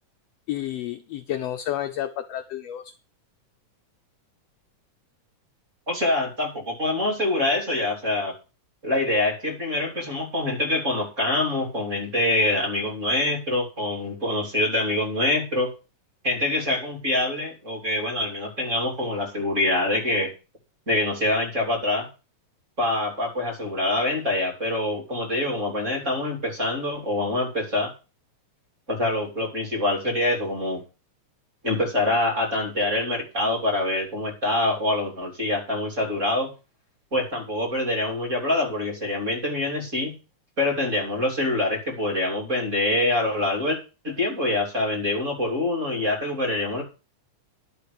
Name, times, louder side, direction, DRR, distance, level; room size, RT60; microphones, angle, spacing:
voice 1, 0.5-2.9, left 12 dB, 75° left, 7 dB, 1.6 m, -30 dB
voice 2, 5.9-8.3 8.8-15.7 16.2-20.3 20.9-22.1 22.8-27.9 28.9-30.8 31.6-36.5 37.1-40.1 40.6-43.8 44.0-46.8, left 1 dB, 25° right, 1 dB, 3.2 m, -25 dB
11.0 x 5.0 x 8.4 m, 0.31 s
omnidirectional pair, 3.4 m